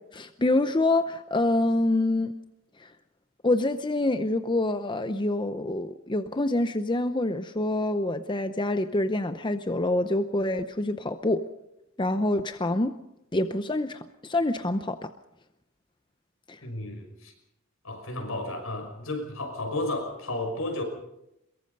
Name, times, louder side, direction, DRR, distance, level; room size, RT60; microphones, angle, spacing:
voice 1, 0.1-2.3 2.8-2.9 3.4-11.5 12.0-12.9 13.3-15.1 16.5-16.6, left 2 dB, 20° left, 9 dB, 0.7 m, -26 dB
voice 2, 16.6-17.3 17.8-20.8, left 2 dB, 75° left, 5 dB, 5.7 m, -32 dB
23.0 x 22.5 x 5.4 m, 0.85 s
head